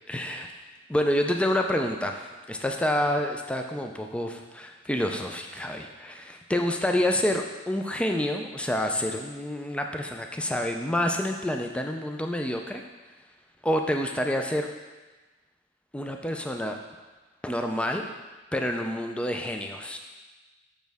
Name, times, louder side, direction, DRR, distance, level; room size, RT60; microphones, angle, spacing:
voice 1, 0.1-0.5 0.9-12.8 13.6-14.7 15.9-16.8 17.4-18.0 18.5-20.0, left 1 dB, 5° left, 3 dB, 0.3 m, -28 dB
6.4 x 6.2 x 3.4 m, 1.2 s
head